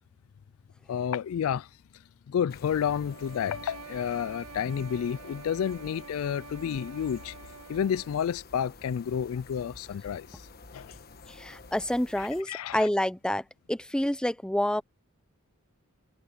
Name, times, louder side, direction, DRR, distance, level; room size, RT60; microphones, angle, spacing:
voice 1, 0.9-1.7 2.3-7.3 7.7-10.5 10.7-11.0 12.2-12.9, left 8 dB, 65° left, 0.3 m, -30 dB
sound 1, 2.5-12.4, left 3 dB, 45° left, 1.3 m, -50 dB
sound 2, 2.9-8.3, right 4 dB, 75° right, 2.1 m, -47 dB
voice 2, 11.3-14.8, left 1 dB, 5° left, 0.7 m, -28 dB
head